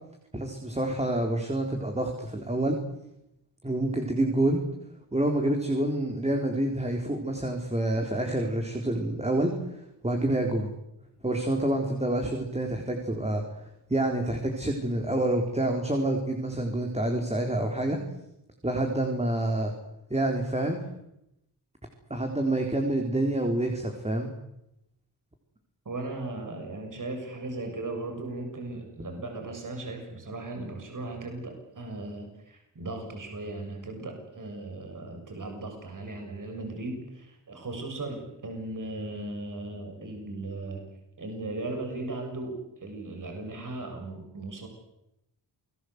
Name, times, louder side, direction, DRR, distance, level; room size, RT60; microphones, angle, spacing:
voice 1, 0.3-2.8 3.6-4.6 5.1-10.7 11.2-18.0 18.6-19.7 20.1-20.8 22.1-24.3, right 1 dB, 15° right, 3 dB, 4.0 m, -27 dB
voice 2, 25.8-40.9 41.2-44.7, right 2 dB, 50° right, 4 dB, 6.8 m, -37 dB
28.0 x 20.0 x 8.1 m, 0.83 s
cardioid pair, 90°, 41 cm